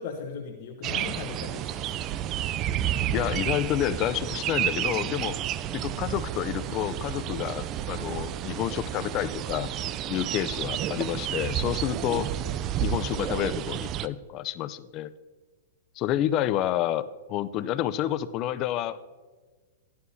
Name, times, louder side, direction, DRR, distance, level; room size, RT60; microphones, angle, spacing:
voice 1, 0.0-1.9 16.5-16.8, left 6 dB, 55° left, 2 dB, 1.0 m, -38 dB
sound 1, 0.8-14.1, right 11 dB, 35° right, 0.4 m, -31 dB
voice 2, 3.1-5.4 5.7-9.7 10.1-12.3 12.8-15.1 16.0-19.2, left 12 dB, 40° left, 14 dB, 0.5 m, -29 dB
14.5 x 11.0 x 2.8 m, 1.4 s
hypercardioid pair, 125°, 0 cm